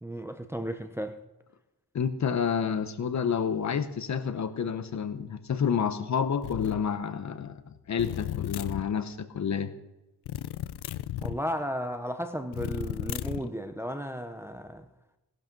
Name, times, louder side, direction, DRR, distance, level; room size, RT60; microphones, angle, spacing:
voice 1, 0.0-1.2 11.2-14.9, equal, 5° right, 0.7 m, -34 dB
voice 2, 1.9-9.7, left 7 dB, 45° left, 0.9 m, -29 dB
sound 1, 6.4-6.8 8.0-8.9 10.2-11.4 12.5-13.5, left 12 dB, 85° left, 0.7 m, -34 dB
17.5 x 12.0 x 5.3 m
wide cardioid pair, 175°, 38 cm